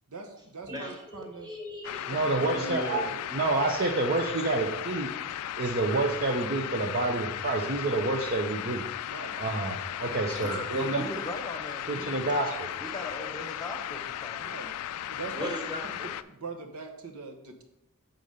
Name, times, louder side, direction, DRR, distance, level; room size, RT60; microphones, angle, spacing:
voice 1, 0.1-1.5 2.1-2.6 9.1-9.4 14.4-14.7 15.1-15.5 16.0-17.6, right 4 dB, 70° right, 3 dB, 1.1 m, -41 dB
voice 2, 0.6-2.1 2.4-3.1 13.2-13.4 15.3-16.1, left 1 dB, 20° right, 0 dB, 1.5 m, -38 dB
sound 1, 1.8-16.2, left 11 dB, 90° left, 0.3 m, -36 dB
voice 3, 2.1-3.0 3.3-5.1 5.6-8.8 9.4-11.0 11.9-12.7, right 2 dB, 45° right, 1 dB, 0.7 m, -28 dB
voice 4, 10.3-12.1 12.7-14.6, left 1 dB, 20° left, 4 dB, 0.9 m, -39 dB
7.1 x 3.8 x 6.5 m, 0.91 s
head